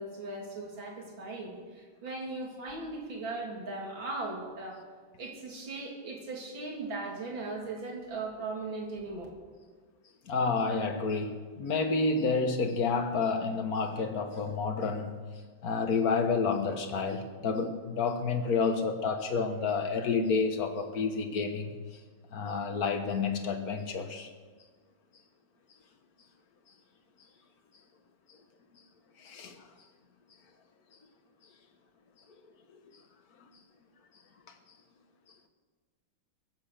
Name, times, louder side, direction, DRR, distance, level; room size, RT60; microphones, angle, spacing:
voice 1, 0.0-4.8 5.2-9.3, right 3 dB, 75° right, -1 dB, 3.5 m, -38 dB
voice 2, 10.3-15.2 15.6-21.8 22.3-24.3 29.2-29.5, left 4 dB, 50° left, 6 dB, 1.8 m, -29 dB
22.5 x 8.2 x 6.6 m, 1.5 s
omnidirectional pair, 2.1 m